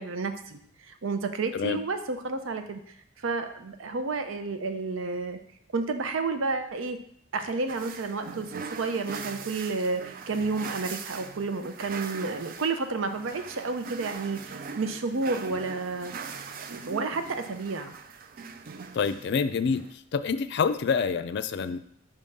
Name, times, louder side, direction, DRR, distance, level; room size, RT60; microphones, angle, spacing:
voice 1, 0.0-2.8 3.2-5.4 5.7-7.0 7.3-16.1 16.7-17.9, right 3 dB, 85° right, 8 dB, 0.6 m, -31 dB
sound 1, 7.7-19.9, right 5 dB, 45° right, 0.4 m, -41 dB
voice 2, 18.9-19.8 20.1-21.9, left 5 dB, 60° left, 12 dB, 0.4 m, -27 dB
5.4 x 3.6 x 5.4 m, 0.68 s
head